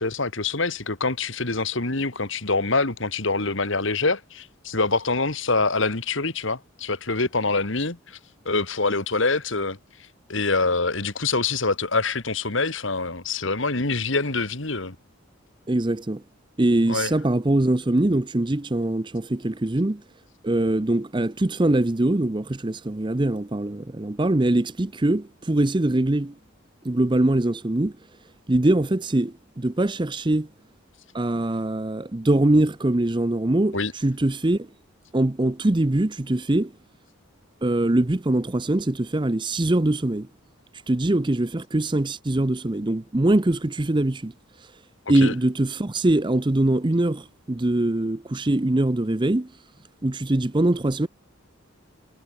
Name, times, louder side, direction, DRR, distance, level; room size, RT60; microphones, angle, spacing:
voice 1, 0.0-8.2 8.5-9.8 10.3-15.0 16.9-17.1 33.7-33.9 45.1-45.3, left 3 dB, 65° left, 2.2 m, -25 dB
voice 2, 15.7-16.2 16.6-20.0 20.4-26.3 26.8-27.9 28.5-30.5 31.1-33.8 34.0-34.7 35.1-36.7 37.6-40.3 40.9-44.3 45.1-49.5 50.0-51.1, right 1 dB, 20° right, 0.6 m, -22 dB
head